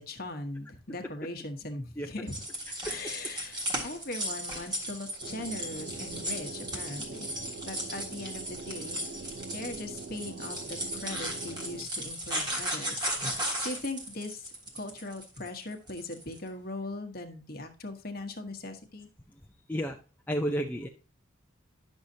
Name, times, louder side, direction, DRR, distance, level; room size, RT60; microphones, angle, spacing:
voice 1, 0.0-2.4 2.7-7.3 7.7-19.1, left 2 dB, 45° left, 6 dB, 1.2 m, -40 dB
sound 1, 2.3-16.4, right 1 dB, 20° right, 1.5 m, -36 dB
sound 2, 5.2-11.9, right 3 dB, 45° right, 0.4 m, -43 dB
voice 2, 19.7-20.0 20.3-20.9, equal, 10° left, 1 dB, 0.5 m, -31 dB
10.5 x 6.3 x 2.7 m, 0.33 s
head